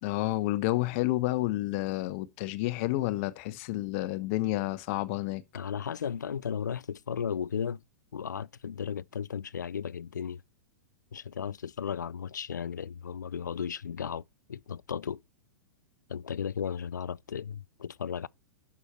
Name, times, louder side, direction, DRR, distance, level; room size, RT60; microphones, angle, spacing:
voice 1, 0.0-5.4, left 17 dB, 45° left, 1.0 m, -30 dB
voice 2, 5.5-7.8 8.1-10.4 11.1-14.2 14.5-15.2 16.1-18.3, left 7 dB, 75° left, 0.4 m, -35 dB
11.5 x 6.1 x 4.3 m
figure-of-eight pair, 100°, 10 cm